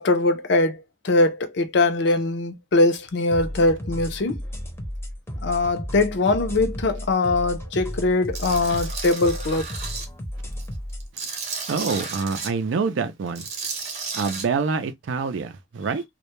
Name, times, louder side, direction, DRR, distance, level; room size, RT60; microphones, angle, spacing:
voice 1, 0.0-4.4 5.4-9.7, left 2 dB, 65° left, 0.5 m, -22 dB
sound 1, 3.3-11.1, equal, 15° left, 0.6 m, -33 dB
Tools, 8.3-10.1 10.5-12.5 13.3-14.4, right 4 dB, 40° right, 0.8 m, -33 dB
voice 2, 11.7-13.5 14.1-16.0, right 5 dB, 75° right, 0.4 m, -26 dB
2.2 x 2.1 x 2.9 m
head